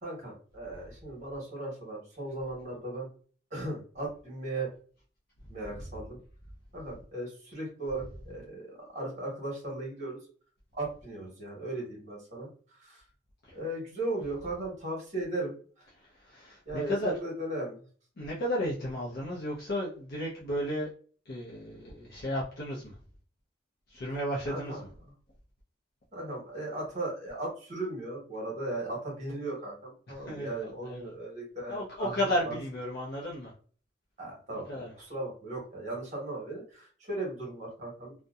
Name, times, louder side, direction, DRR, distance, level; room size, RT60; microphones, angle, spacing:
voice 1, 0.0-3.1 3.5-4.7 5.5-6.2 6.7-10.2 10.7-13.0 13.5-15.9 16.6-17.9 24.4-24.8 26.1-32.2 32.4-32.6 34.2-38.1, right 2 dB, 35° right, -2 dB, 1.2 m, -37 dB
voice 2, 16.0-17.2 18.2-20.9 21.3-23.0 23.9-24.8 30.1-31.1 31.7-33.5 34.5-34.9, equal, 50° left, -5 dB, 0.6 m, -34 dB
2.7 x 2.1 x 2.3 m, 0.43 s
head